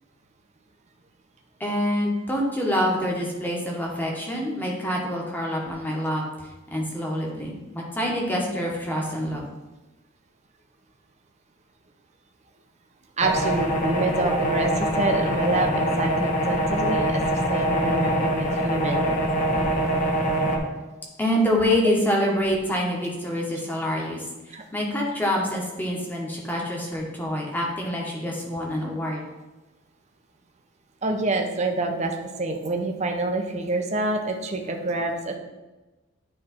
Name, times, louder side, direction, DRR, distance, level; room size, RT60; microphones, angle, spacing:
voice 1, 1.6-6.2 6.7-9.4 21.2-24.2 24.7-29.2, equal, 10° left, -2 dB, 1.2 m, -26 dB
sound 1, 13.2-20.6, equal, 40° left, 0.9 m, -24 dB
voice 2, 13.2-19.1 24.5-24.6 31.0-35.4, right 2 dB, 35° right, 3 dB, 0.7 m, -27 dB
9.7 x 3.3 x 4.3 m, 1.1 s
head